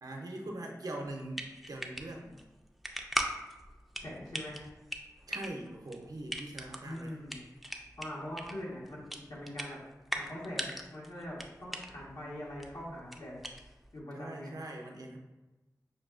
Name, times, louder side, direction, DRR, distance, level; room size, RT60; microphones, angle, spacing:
voice 1, 0.0-2.4 5.3-7.2 14.1-15.2, right 1 dB, 80° right, 1 dB, 0.6 m, -42 dB
sound 1, 1.0-14.0, equal, ahead, 0.4 m, -41 dB
voice 2, 4.0-4.7 6.8-7.4 8.0-9.8 10.1-13.3 13.9-14.5, left 1 dB, 75° left, -5 dB, 1.3 m, -42 dB
6.1 x 2.3 x 2.4 m, 1.1 s
cardioid pair, 45°, 7 cm